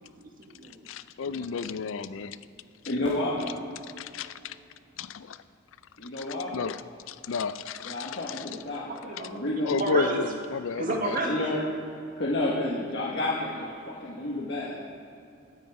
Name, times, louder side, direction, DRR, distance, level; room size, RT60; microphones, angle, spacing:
voice 1, 0.0-0.8 1.2-2.0 2.8-3.8 8.8-10.3 10.8-11.5, right 2 dB, 45° right, 2 dB, 1.6 m, -34 dB
voice 2, 0.9-2.4 4.0-4.6 5.0-5.4 6.2-6.3 6.5-6.8 7.1-8.5 9.7-11.2, left 5 dB, 85° left, 14 dB, 0.4 m, -32 dB
voice 3, 2.9-3.4 6.0-6.5 7.8-9.7 11.2-11.6 12.2-14.8, left 1 dB, 60° left, -5 dB, 1.6 m, -30 dB
15.5 x 9.4 x 4.8 m, 2.6 s
head